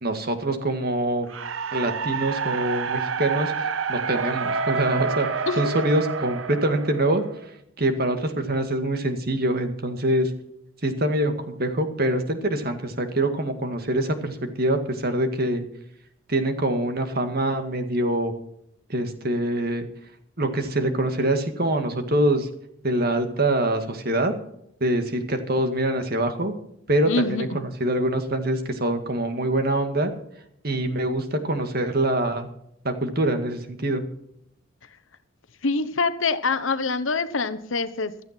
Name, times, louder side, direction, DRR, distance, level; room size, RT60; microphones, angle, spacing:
voice 1, 0.0-1.3 1.7-5.3 5.6-7.2 7.8-10.3 10.8-15.6 16.3-18.3 18.9-19.9 20.4-22.5 22.8-24.3 24.8-26.5 26.9-30.1 30.6-32.5 32.8-34.0, right 1 dB, 50° right, 7 dB, 2.0 m, -24 dB
sound 1, 1.3-7.4, right 5 dB, 75° right, 0.9 m, -28 dB
voice 2, 5.5-5.8 27.0-27.6 35.6-38.1, left 4 dB, 75° left, 13 dB, 1.1 m, -25 dB
15.5 x 13.0 x 4.5 m, 0.73 s
head